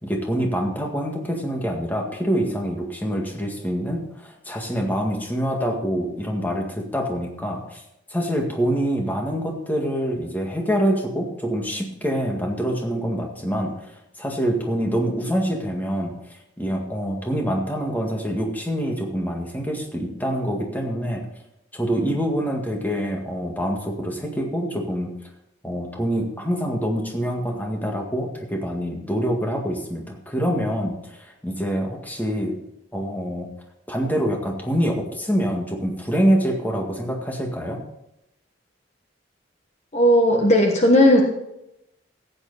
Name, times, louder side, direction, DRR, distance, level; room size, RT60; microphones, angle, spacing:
voice 1, 0.0-7.8 8.1-13.9 14.2-21.3 21.7-25.1 25.6-32.6 32.9-33.5 33.9-37.8, equal, 10° left, 1 dB, 1.9 m, -25 dB
voice 2, 39.9-41.2, equal, 35° left, 2 dB, 1.3 m, -15 dB
14.5 x 9.2 x 4.1 m, 0.84 s
head